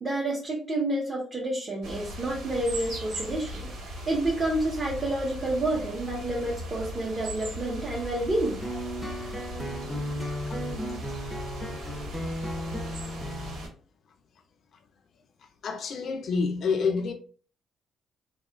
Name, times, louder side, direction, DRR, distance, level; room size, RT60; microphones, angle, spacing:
voice 1, 0.0-3.7 4.1-8.6, right 1 dB, 25° right, 0.8 m, -29 dB
sound 1, 1.8-13.7, equal, 80° right, 1.4 m, -38 dB
sound 2, 8.6-13.7, equal, 5° left, 0.5 m, -35 dB
voice 2, 15.6-17.1, left 5 dB, 55° left, 0.3 m, -27 dB
2.3 x 2.2 x 3.3 m
cardioid pair, 115°, 0 cm